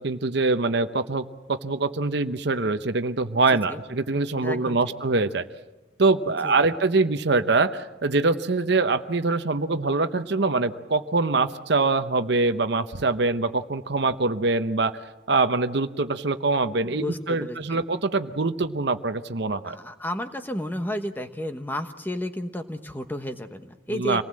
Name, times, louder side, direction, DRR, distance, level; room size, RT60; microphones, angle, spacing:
voice 1, 0.0-5.5 6.0-15.0 15.3-19.7 23.9-24.2, right 3 dB, 60° right, 10 dB, 0.9 m, -24 dB
voice 2, 4.4-4.8 6.3-6.5 16.8-17.8 19.6-24.2, equal, 10° left, 7 dB, 1.1 m, -32 dB
26.5 x 19.0 x 7.6 m, 1.1 s
head